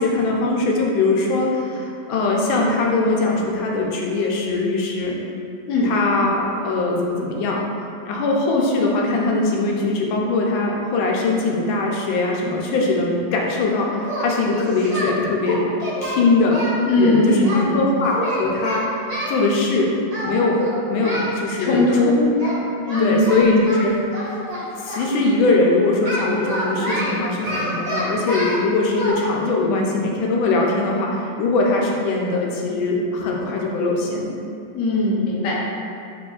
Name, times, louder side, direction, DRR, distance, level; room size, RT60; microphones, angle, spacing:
voice 1, 0.0-5.1 5.8-7.6 8.1-15.6 16.0-16.6 17.0-19.9 20.2-20.6 20.9-22.3 23.0-24.4 24.8-34.4, left 3 dB, 85° left, -1 dB, 1.4 m, -21 dB
Singing, 14.0-15.1 15.5-17.6 18.1-19.4 20.1-20.3 20.6-21.3 22.4-22.6 22.9-25.1 26.0-28.6 28.9-29.1, equal, 30° right, 0.7 m, -27 dB
voice 2, 16.9-17.9 21.6-22.2 22.9-23.6 34.7-35.5, left 2 dB, 60° left, -4 dB, 1.0 m, -19 dB
5.0 x 3.6 x 2.3 m, 2.5 s
omnidirectional pair, 2.1 m